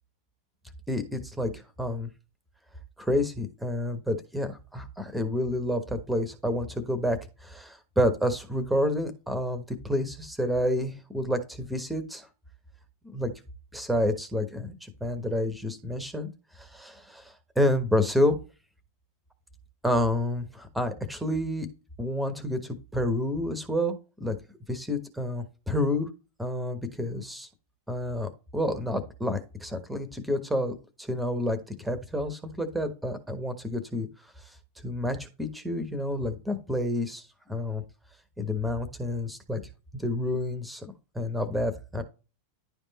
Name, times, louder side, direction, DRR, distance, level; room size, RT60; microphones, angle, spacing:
voice 1, 0.9-2.1 3.0-12.3 13.1-13.3 13.7-16.3 16.6-18.4 19.8-21.7 22.0-23.9 24.2-24.3 24.7-26.1 26.4-27.5 27.9-34.1 34.8-37.2 37.5-37.8 38.4-39.6 39.9-42.0, left 1 dB, 5° right, 10 dB, 1.2 m, -29 dB
11.0 x 3.6 x 4.1 m, 0.31 s
figure-of-eight pair, 90°, 0 cm